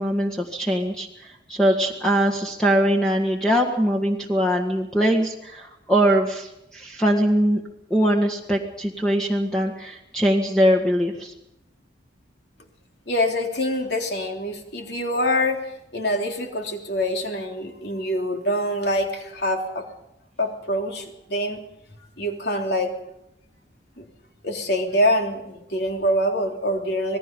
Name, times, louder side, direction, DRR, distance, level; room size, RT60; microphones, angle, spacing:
voice 1, 0.0-7.6 7.9-11.3, equal, 5° left, 0 dB, 1.7 m, -22 dB
voice 2, 13.1-15.7 15.9-19.9 20.4-21.6 22.2-22.9 24.0-24.1 24.4-27.2, equal, 60° left, 2 dB, 3.5 m, -25 dB
27.0 x 19.0 x 5.5 m, 0.83 s
head